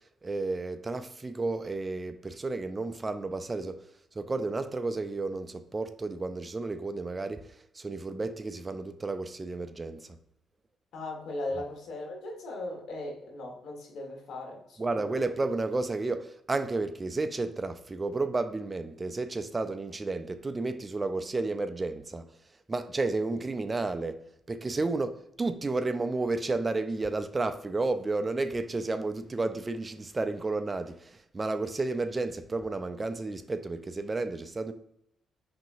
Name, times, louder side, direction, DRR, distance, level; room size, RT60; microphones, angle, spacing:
voice 1, 0.2-3.9 4.1-10.1 14.8-22.2 22.7-24.2 24.5-34.7, right 3 dB, 25° right, 0.4 m, -32 dB
voice 2, 10.9-14.9, left 2 dB, 70° left, 1.4 m, -38 dB
5.9 x 2.8 x 2.6 m
cardioid pair, 90°, 0 cm